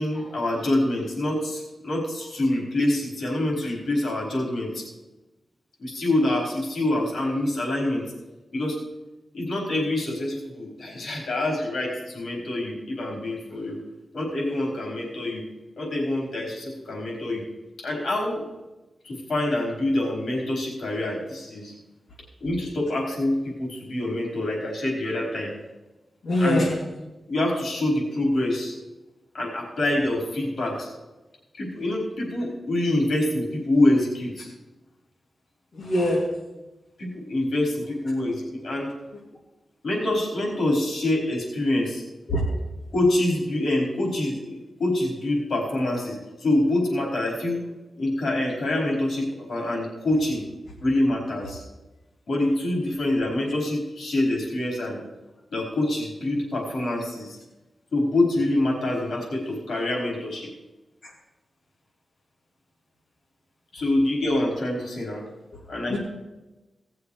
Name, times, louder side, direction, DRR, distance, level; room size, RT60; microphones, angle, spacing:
voice 1, 0.0-4.8 5.8-8.0 8.5-8.8 9.3-13.8 14.1-15.4 15.8-17.4 17.8-18.4 19.0-21.7 22.4-25.5 26.4-26.7 27.3-28.7 29.3-30.9 31.5-34.5 37.0-38.9 39.8-42.0 42.9-47.6 48.0-50.4 50.8-51.6 52.3-55.0 55.5-57.4 57.9-60.5 63.7-65.2 65.7-66.0, left 1 dB, 70° left, -2 dB, 4.6 m, -26 dB
voice 2, 26.2-26.8 35.7-36.3 42.3-42.4 61.0-61.1 65.9-66.0, left 1 dB, 45° left, -7 dB, 3.2 m, -23 dB
18.0 x 7.0 x 4.9 m, 1.1 s
wide cardioid pair, 130°, 0 cm